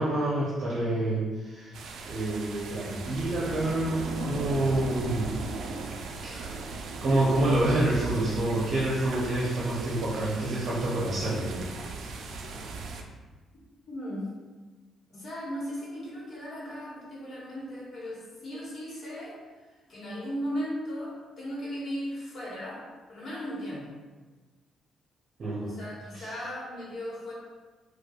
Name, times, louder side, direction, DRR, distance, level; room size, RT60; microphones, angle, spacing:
voice 1, 0.0-1.8 2.1-5.3 6.1-6.6 7.0-11.6 25.4-25.7 26.1-26.2, right 1 dB, 50° right, -7 dB, 0.7 m, -28 dB
sound 1, 1.7-13.0, right 3 dB, 70° right, 0.3 m, -37 dB
voice 2, 13.9-14.3 15.1-19.4 19.9-22.8 23.1-24.0 25.6-27.3, equal, 50° left, -6 dB, 1.2 m, -37 dB
4.6 x 2.3 x 2.3 m, 1.3 s
cardioid pair, 90°, 0 cm